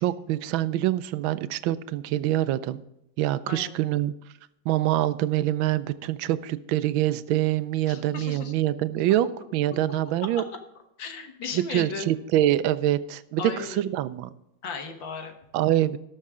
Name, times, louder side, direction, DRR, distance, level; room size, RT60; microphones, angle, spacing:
voice 1, 0.0-2.8 3.2-4.1 4.7-10.4 11.5-14.3 15.5-16.0, right 13 dB, 90° right, 15 dB, 1.4 m, -25 dB
voice 2, 7.9-8.5 11.0-12.1 13.4-13.9 14.6-15.3, left 5 dB, 75° left, 5 dB, 2.0 m, -35 dB
18.5 x 6.6 x 3.6 m, 0.86 s
omnidirectional pair, 2.1 m